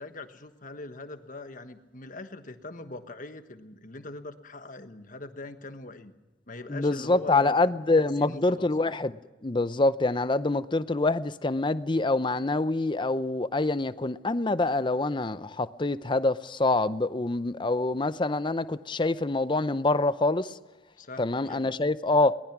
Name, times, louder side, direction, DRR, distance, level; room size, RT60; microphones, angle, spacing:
voice 1, 0.0-6.1 6.5-7.5 8.2-8.9 21.0-21.7, left 2 dB, 45° left, 1.4 m, -42 dB
voice 2, 6.7-20.6 21.2-22.3, left 2 dB, 25° left, 0.6 m, -26 dB
22.5 x 19.0 x 6.0 m
head